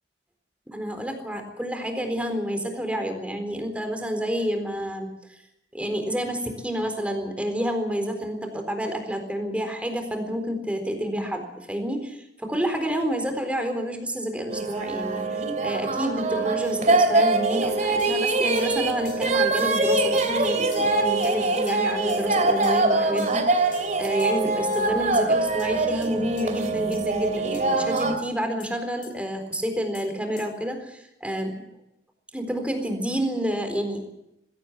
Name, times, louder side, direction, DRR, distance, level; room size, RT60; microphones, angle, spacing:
voice 1, 0.7-5.1 5.7-12.2 12.5-31.6 32.3-34.0, equal, 5° right, 6 dB, 4.1 m, -29 dB
sound 1, 14.5-28.2, right 3 dB, 45° right, 2.7 m, -23 dB
sound 2, 18.0-18.2 18.6-18.8 19.1-19.3 19.6-19.8 20.2-20.4 20.7-20.9 21.2-21.4 21.7-21.8 22.1-22.3 22.6-22.8 23.2-23.4 23.7-23.9 24.2-24.4 24.7-24.8 25.2-25.3 25.6-25.7 26.0-26.1 26.4-26.5 26.9-27.0 27.5-27.6 28.0-28.1 28.6-28.7 29.0-29.1 29.5-29.6 29.9-30.1 30.4-30.5, left 7 dB, 50° left, 5.4 m, -45 dB
21.0 x 17.0 x 8.3 m, 0.84 s
head